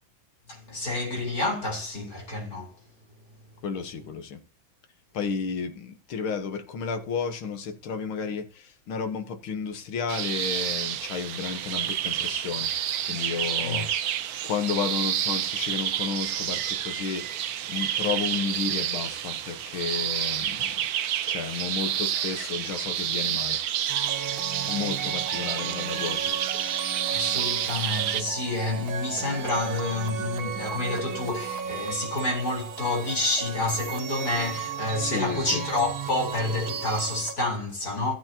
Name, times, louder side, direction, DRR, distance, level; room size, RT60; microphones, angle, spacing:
voice 1, 0.5-2.7 13.6-13.8 27.1-38.1, left 2 dB, 45° left, 4.6 m, -29 dB
voice 2, 3.6-4.4 5.1-12.7 13.0-14.1 14.4-20.9 21.3-23.6 24.6-26.3 35.0-35.7, left 6 dB, 90° left, 2.1 m, -32 dB
sound 1, 10.1-28.2, right 10 dB, 65° right, 1.0 m, -29 dB
sound 2, 23.9-37.3, right 7 dB, 85° right, 2.0 m, -35 dB
15.5 x 8.5 x 2.9 m
omnidirectional pair, 2.2 m